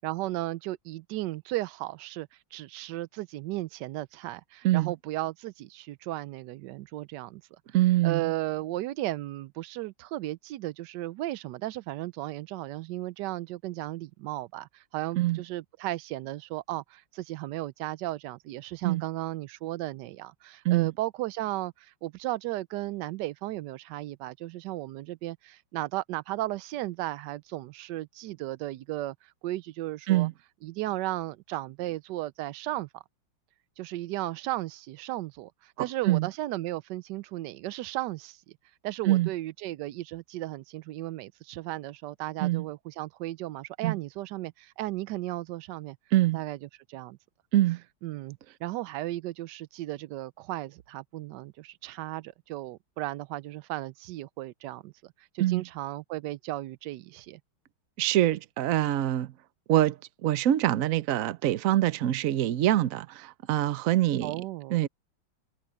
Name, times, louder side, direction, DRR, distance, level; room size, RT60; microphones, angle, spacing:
voice 1, 0.0-7.6 8.0-30.3 30.6-33.0 33.8-38.4 38.8-46.0 46.3-47.2 48.0-57.4 64.2-64.9, right 16 dB, 75° right, 1.0 m, -35 dB
voice 2, 7.7-8.3 15.2-15.4 18.8-19.0 20.6-20.9 30.1-30.3 36.1-36.3 39.0-39.3 42.4-42.6 43.8-44.0 46.1-46.4 47.5-47.8 55.4-55.6 58.0-59.3 59.7-64.4 64.7-64.9, right 14 dB, 90° right, 0.7 m, -24 dB
omnidirectional pair, 2.2 m